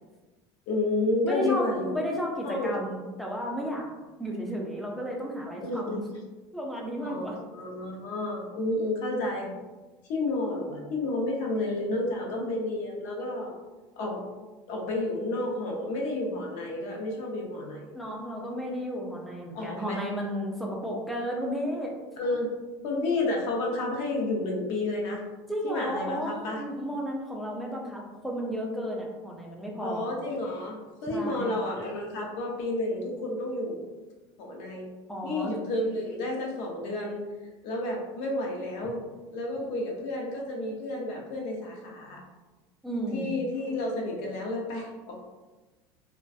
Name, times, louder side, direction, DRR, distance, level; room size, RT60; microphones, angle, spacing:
voice 1, 0.7-2.0 2.4-2.8 5.6-6.0 7.0-9.5 10.1-13.5 14.0-14.2 14.7-17.9 19.5-20.0 22.2-22.5 22.8-25.2 25.6-26.6 29.8-33.8 34.4-34.9 35.2-37.3 37.6-39.0 39.3-42.2 43.1-45.2, left 2 dB, 65° left, -1 dB, 0.6 m, -31 dB
voice 2, 1.2-3.9 4.2-6.0 6.5-7.4 17.9-21.9 25.5-30.1 31.1-31.6 35.1-35.6 39.6-39.7 42.8-43.3, equal, ahead, -2 dB, 0.4 m, -33 dB
2.3 x 2.2 x 2.5 m, 1.2 s
cardioid pair, 150°, 13 cm